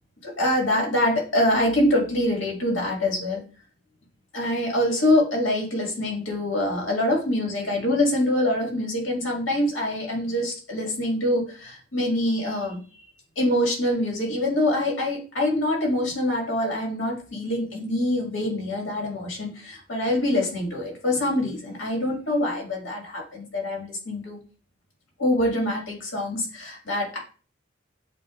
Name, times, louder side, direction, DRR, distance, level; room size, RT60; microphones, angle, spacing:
voice 1, 0.2-3.4 4.3-12.8 13.4-24.4 25.2-27.2, left 1 dB, 80° left, -1 dB, 2.0 m, -25 dB
7.6 x 2.6 x 2.5 m, 0.37 s
head